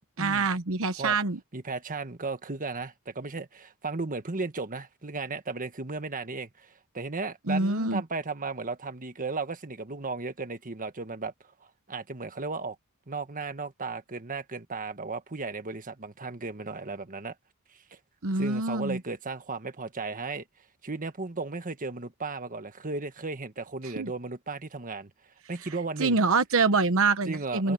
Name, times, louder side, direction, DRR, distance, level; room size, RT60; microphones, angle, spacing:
voice 1, 0.2-1.4 7.5-8.0 18.2-19.0 24.0-24.1 26.0-27.7, right 3 dB, 65° right, 1.1 m, -25 dB
voice 2, 1.5-11.3 11.9-12.7 13.1-17.3 17.9-18.0 18.3-20.4 20.8-25.1 25.5-26.2 27.2-27.7, right 3 dB, 35° right, 1.6 m, -35 dB
head